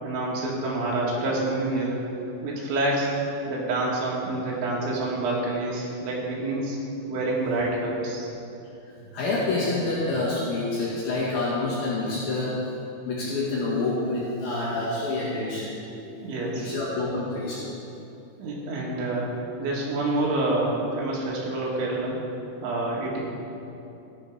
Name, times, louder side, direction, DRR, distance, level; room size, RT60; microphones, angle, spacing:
voice 1, 0.0-2.0 2.4-3.1 3.5-6.8 7.1-8.3 16.2-16.7 18.4-22.2 22.6-23.2, right 2 dB, 85° right, -4 dB, 4.4 m, -27 dB
voice 2, 9.1-12.5 13.1-15.7 16.5-17.6, left 2 dB, 60° left, -7 dB, 3.4 m, -27 dB
15.5 x 8.4 x 5.0 m, 2.8 s
omnidirectional pair, 5.2 m